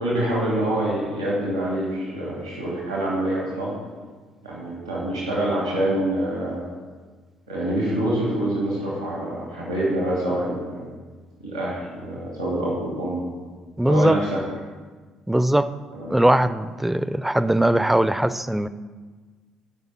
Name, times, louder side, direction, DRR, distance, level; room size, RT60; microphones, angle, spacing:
voice 1, 0.0-3.8 4.4-6.7 7.5-10.9 11.4-13.3 13.9-14.4 15.9-16.2, right 1 dB, 85° right, -5 dB, 2.2 m, -26 dB
voice 2, 13.8-14.2 15.3-15.7 16.1-18.7, right 1 dB, 5° right, 14 dB, 0.4 m, -20 dB
13.5 x 5.4 x 5.8 m, 1.4 s
figure-of-eight pair, 50°, 3 cm